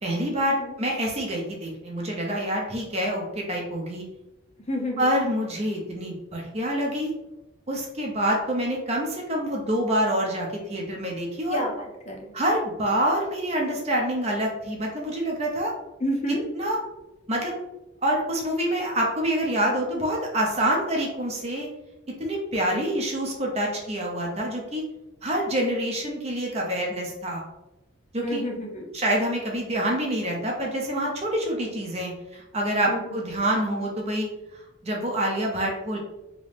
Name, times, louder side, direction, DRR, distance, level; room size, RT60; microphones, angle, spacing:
voice 1, 0.0-4.1 5.0-7.1 7.7-11.6 12.3-15.7 16.3-16.8 17.3-17.5 18.0-21.7 22.2-24.8 25.2-27.4 28.1-28.4 28.9-34.3 34.8-36.0, right 1 dB, 30° right, -1 dB, 0.6 m, -26 dB
voice 2, 4.7-5.1 11.5-12.3 16.0-16.5 28.2-28.8 32.9-33.1, equal, 30° left, 0 dB, 0.5 m, -29 dB
3.0 x 2.6 x 3.3 m, 0.95 s
head